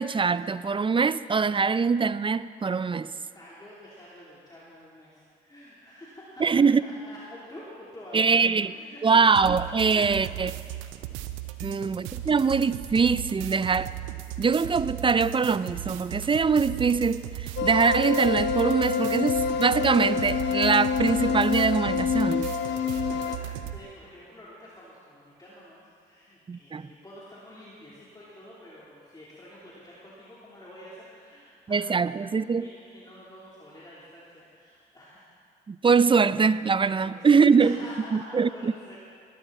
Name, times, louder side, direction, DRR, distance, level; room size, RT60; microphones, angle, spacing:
voice 1, 0.0-3.1 6.4-6.8 8.1-8.7 9.0-10.5 11.6-13.9 14.4-22.5 26.5-26.9 31.7-32.7 35.7-37.8 38.1-38.7, right 5 dB, 25° right, 0.5 m, -23 dB
voice 2, 3.2-8.4 8.7-9.2 9.9-10.0 11.5-11.8 22.9-32.1 32.5-35.3 36.8-39.0, left 1 dB, 20° left, 3.5 m, -48 dB
sound 1, 9.3-23.8, right 13 dB, 90° right, 0.7 m, -37 dB
sound 2, 17.6-23.4, left 6 dB, 70° left, 0.8 m, -27 dB
19.0 x 12.0 x 4.2 m
supercardioid pair, 55°, 19 cm